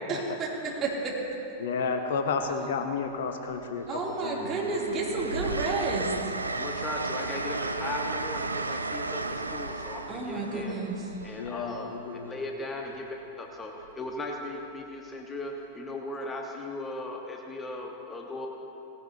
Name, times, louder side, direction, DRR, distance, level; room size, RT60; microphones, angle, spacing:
voice 1, 0.1-1.2 3.9-6.3 10.1-11.0, right 3 dB, 30° right, -4 dB, 2.8 m, -31 dB
Train, 0.7-1.0 2.3-3.1 3.5-12.2 13.8-14.1, right 3 dB, 80° right, 0.5 m, -35 dB
voice 2, 1.6-4.5 11.4-12.4, left 5 dB, 60° left, 7 dB, 0.8 m, -32 dB
voice 3, 6.5-10.9 11.2-12.9 13.4-18.5, left 2 dB, 15° left, 1 dB, 1.2 m, -37 dB
18.0 x 16.5 x 2.8 m, 3.0 s
figure-of-eight pair, 90°, 0 cm